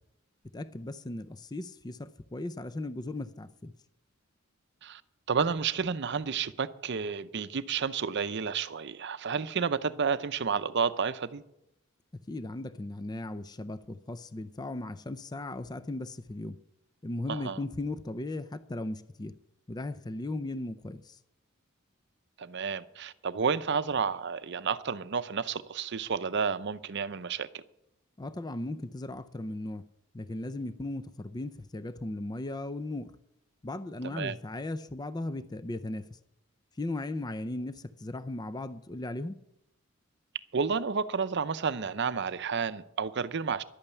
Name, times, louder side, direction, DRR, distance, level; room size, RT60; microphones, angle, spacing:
voice 1, 0.5-3.7 12.3-16.6 17.0-19.3 19.7-21.2 28.2-29.8 30.1-33.1 33.6-36.1 36.8-39.4, left 2 dB, 20° left, 0.5 m, -37 dB
voice 2, 5.3-11.4 17.3-17.6 22.4-27.6 34.0-34.4 40.5-43.6, right 6 dB, 60° right, 0.6 m, -31 dB
11.5 x 8.8 x 8.2 m
head